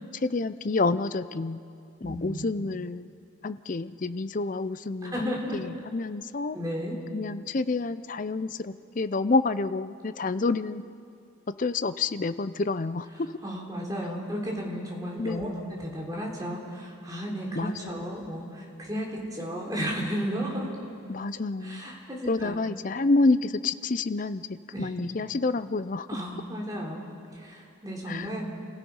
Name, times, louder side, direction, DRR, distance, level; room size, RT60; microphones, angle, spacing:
voice 1, 0.2-1.6 2.0-3.1 3.4-6.6 7.1-10.8 11.5-13.3 15.2-15.6 17.5-18.2 21.1-21.9 22.3-26.1 28.1-28.3, left 3 dB, 40° left, 13 dB, 0.5 m, -28 dB
voice 2, 2.0-2.4 5.0-5.6 6.5-7.0 13.4-20.7 21.6-22.6 24.7-24.9 26.1-27.0 27.3-28.5, equal, 20° right, -2 dB, 3.5 m, -33 dB
29.5 x 16.0 x 5.6 m, 2.5 s
head